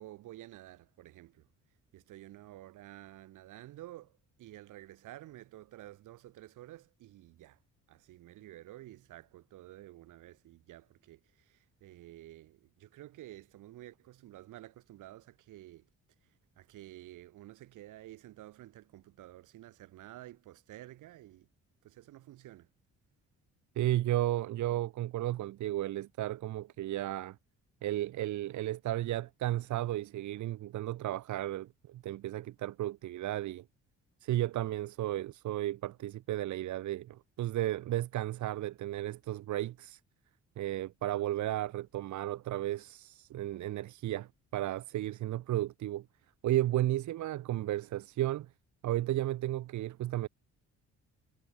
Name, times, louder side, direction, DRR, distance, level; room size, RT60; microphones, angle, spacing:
voice 1, 0.0-1.5 1.9-7.6 7.9-15.9 16.2-21.5 21.8-22.7, right 15 dB, 85° right, 4.1 m, -51 dB
voice 2, 23.8-27.4 27.8-33.6 34.2-40.0 40.6-46.0 46.4-48.5 48.8-50.3, right 14 dB, 70° right, 0.9 m, -33 dB
cardioid pair, 90°, 30 cm